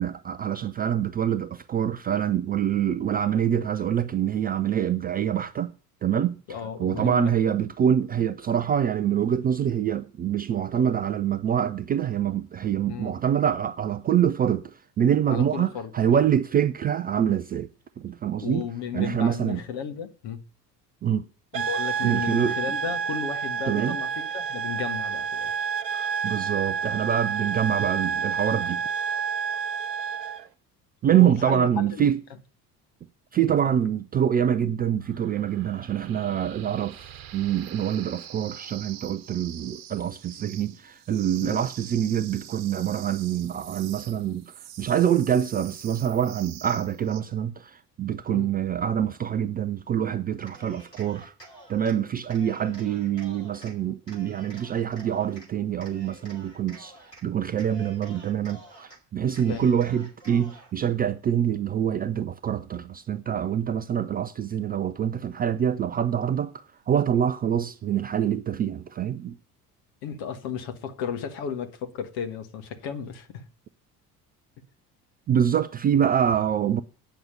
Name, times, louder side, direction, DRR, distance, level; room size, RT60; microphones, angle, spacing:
voice 1, 0.0-5.7 6.0-6.4 6.8-14.7 15.0-17.7 18.0-18.7 18.9-19.6 21.0-21.3 22.0-22.5 23.7-24.0 25.9-28.8 31.0-32.2 33.3-51.3 51.7-56.9 57.2-69.4 75.3-76.8, right 9 dB, 20° right, 0.4 m, -25 dB
voice 2, 6.5-7.3 12.9-13.2 15.3-16.2 18.4-20.4 21.5-25.5 27.6-27.7 31.1-32.0 33.6-33.7 41.4-41.6 48.3-48.5 52.7-52.9 59.5-59.7 70.0-73.4, left 7 dB, 50° left, 1.5 m, -34 dB
sound 1, 21.5-30.5, right 6 dB, 80° right, 0.8 m, -29 dB
sound 2, 35.0-47.2, right 11 dB, 45° right, 1.2 m, -45 dB
Cheering, 50.4-52.0 52.3-53.7 54.1-55.5 55.8-57.2 57.5-59.0 59.3-60.7, right 1 dB, 90° left, 2.8 m, -49 dB
9.3 x 6.0 x 8.5 m
figure-of-eight pair, 60°, 48 cm